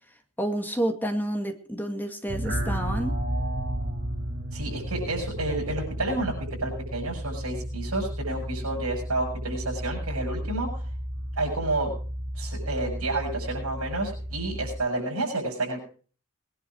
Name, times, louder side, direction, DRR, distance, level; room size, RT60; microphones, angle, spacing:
voice 1, 0.4-3.2, right 1 dB, 10° left, 5 dB, 2.1 m, -29 dB
sound 1, 2.3-14.7, equal, 55° right, 5.0 m, -33 dB
voice 2, 4.5-6.3 6.6-10.7 11.4-11.9 12.4-15.8, right 2 dB, 75° right, -2 dB, 7.5 m, -30 dB
21.0 x 11.0 x 4.8 m, 0.41 s
head